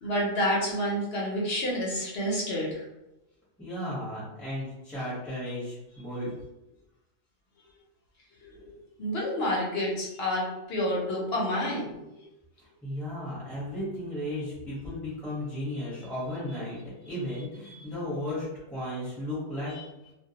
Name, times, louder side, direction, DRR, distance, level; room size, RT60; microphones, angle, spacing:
voice 1, 0.0-2.8 8.4-8.7 9.0-12.3 19.7-19.8, equal, 60° left, -4 dB, 0.8 m, -29 dB
voice 2, 3.6-6.3 12.8-19.8, left 1 dB, ahead, -10 dB, 0.7 m, -35 dB
2.2 x 2.2 x 2.7 m, 0.95 s
omnidirectional pair, 1.3 m